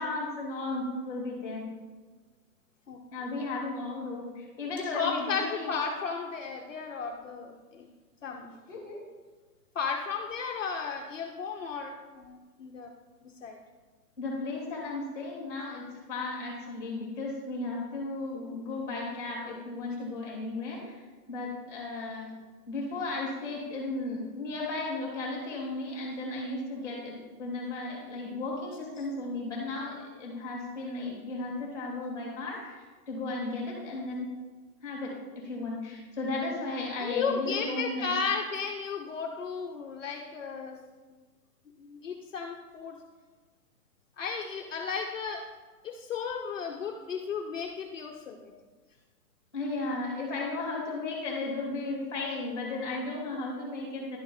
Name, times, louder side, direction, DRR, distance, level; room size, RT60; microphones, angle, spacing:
voice 1, 0.0-1.6 3.1-5.7 8.7-9.0 14.2-22.3 22.7-34.3 34.8-35.1 35.4-38.1 49.5-54.2, left 2 dB, 5° left, -3 dB, 2.1 m, -35 dB
voice 2, 4.8-7.9 8.2-8.5 9.7-12.9 13.2-13.6 29.0-29.1 37.0-40.8 41.8-43.0 44.2-45.4 45.8-48.5, left 5 dB, 50° left, 1 dB, 0.8 m, -34 dB
11.0 x 3.8 x 4.0 m, 1.4 s
hypercardioid pair, 170°, 50 cm